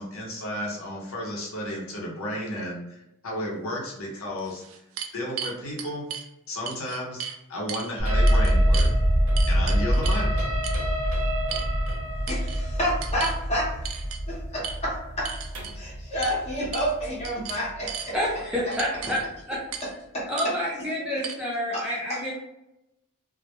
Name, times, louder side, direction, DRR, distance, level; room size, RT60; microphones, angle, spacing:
voice 1, 0.0-3.0 3.2-4.6 5.1-6.1 6.5-7.2 7.5-8.9 9.5-10.5, left 1 dB, 65° left, -2 dB, 0.7 m, -33 dB
sound 1, 3.7-3.8 4.4-6.3 6.7-7.4 7.7-7.9 8.3-8.9 9.4-10.3 10.6-10.8 11.5-12.0 12.3-12.6 13.0-13.4 13.8-14.2 14.6-14.8 15.2-15.8 16.2-16.4 16.7-17.0 17.2-18.1 18.7-19.2 19.7-19.9 20.4-20.5 21.2-21.3, right 8 dB, 65° right, 0.3 m, -35 dB
sound 2, 8.0-18.0 18.3-19.0, equal, 30° right, 0.8 m, -25 dB
sound 3, 8.1-15.9, equal, 85° right, 0.7 m, -35 dB
voice 2, 11.5-11.9 12.3-13.8 14.3-15.3 15.7-18.2 19.8-20.5 21.7-22.2, equal, 30° left, -4 dB, 0.8 m, -30 dB
voice 3, 18.1-19.2 19.5-19.6 20.3-22.3, equal, 5° right, -6 dB, 0.5 m, -28 dB
2.1 x 2.1 x 2.9 m, 0.87 s
head